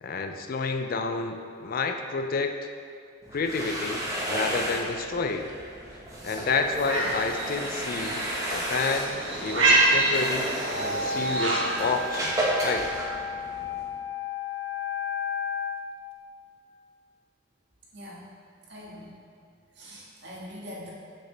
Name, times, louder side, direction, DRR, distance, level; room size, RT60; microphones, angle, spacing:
voice 1, 0.0-2.5 3.3-5.5 6.2-8.2 8.5-12.3 12.6-12.9, left 4 dB, 50° left, 6 dB, 0.4 m, -29 dB
sound 1, 3.2-13.8, right 1 dB, 15° right, 1.1 m, -33 dB
sound 2, 6.8-12.1, right 2 dB, 75° right, 1.5 m, -27 dB
Wind instrument woodwind instrument, 10.5-15.8, left 3 dB, 80° left, 0.7 m, -32 dB
voice 2, 18.7-19.1 19.8-20.9, equal, 60° right, -6 dB, 1.8 m, -42 dB
7.6 x 6.8 x 3.3 m, 2.2 s
head